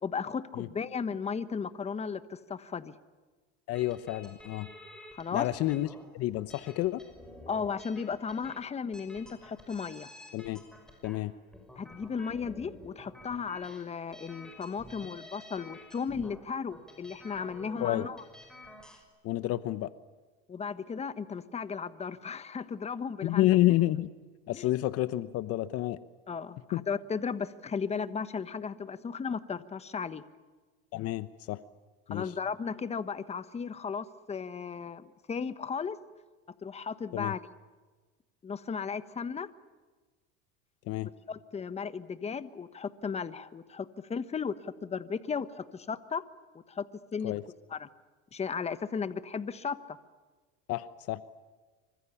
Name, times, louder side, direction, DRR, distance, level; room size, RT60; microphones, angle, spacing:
voice 1, 0.0-2.9 5.1-5.5 7.5-10.1 11.8-18.2 20.5-23.5 24.5-24.7 26.3-30.3 32.1-36.0 36.6-37.4 38.4-39.5 41.0-46.2 46.7-46.9 47.1-47.3 47.7-47.9 48.3-50.0, left 6 dB, 20° left, 13 dB, 1.3 m, -35 dB
voice 2, 3.7-4.7 5.3-5.9 6.1-7.0 10.3-10.6 11.0-11.3 17.8-18.1 19.2-19.9 23.2-24.1 24.5-26.0 26.7-26.8 30.9-31.6 32.1-32.2 37.1-37.3 40.9-41.1 47.2-47.4 50.7-51.2, left 15 dB, 50° left, 14 dB, 1.0 m, -29 dB
sound 1, 3.7-19.0, left 1 dB, ahead, 5.8 m, -51 dB
26.0 x 25.5 x 7.1 m, 1.3 s
supercardioid pair, 115°, 30 cm